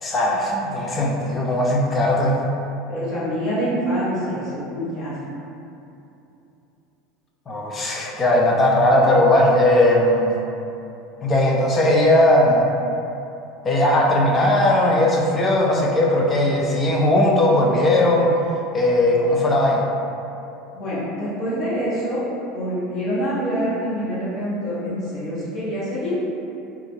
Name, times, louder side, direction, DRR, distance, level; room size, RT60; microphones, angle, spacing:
voice 1, 0.0-2.4 7.5-10.4 11.2-12.6 13.6-18.3 18.7-19.8, left 1 dB, 25° left, -1 dB, 0.5 m, -18 dB
voice 2, 2.9-5.2 20.7-22.2 22.5-26.2, equal, 50° left, -9 dB, 1.1 m, -26 dB
3.5 x 2.3 x 3.0 m, 2.9 s
supercardioid pair, 120°, 0 cm